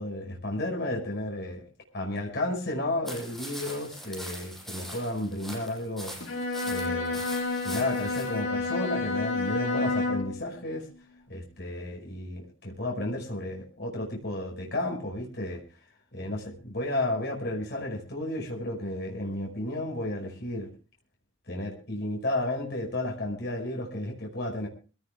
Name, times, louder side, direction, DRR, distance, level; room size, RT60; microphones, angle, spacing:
voice 1, 0.0-1.6 1.9-6.3 6.6-7.2 7.6-10.9 11.3-15.6 16.1-20.7 21.5-24.7, left 1 dB, 60° left, 0 dB, 5.4 m, -32 dB
sound 1, 3.1-8.4, equal, ahead, 6.8 m, -42 dB
Bowed string instrument, 6.2-10.4, left 3 dB, 85° left, 6.7 m, -29 dB
26.5 x 17.5 x 2.3 m, 0.35 s
head